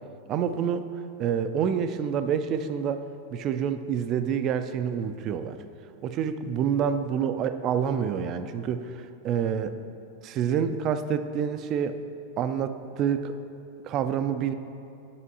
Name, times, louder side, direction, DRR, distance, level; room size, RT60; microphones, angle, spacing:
voice 1, 0.3-0.9 1.2-5.6 6.0-9.8 10.2-12.0 12.4-13.3 13.8-14.5, right 8 dB, 35° right, 10 dB, 0.3 m, -27 dB
8.3 x 7.0 x 2.7 m, 2.8 s
figure-of-eight pair, 90°, 0 cm